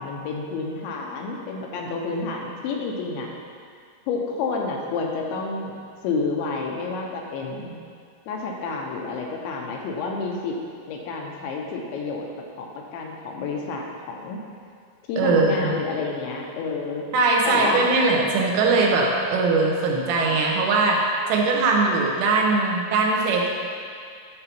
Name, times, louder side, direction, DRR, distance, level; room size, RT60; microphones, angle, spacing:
voice 1, 0.0-3.3 4.1-5.8 6.0-7.7 8.3-10.6 10.9-12.3 12.6-12.7 12.9-14.4 15.1-17.1 17.5-17.9, left 4 dB, 80° left, 0 dB, 3.1 m, -29 dB
voice 2, 15.2-15.8 17.1-21.0 21.3-23.6, right 3 dB, 85° right, -1 dB, 3.7 m, -20 dB
11.5 x 6.7 x 4.5 m, 2.2 s
omnidirectional pair, 5.5 m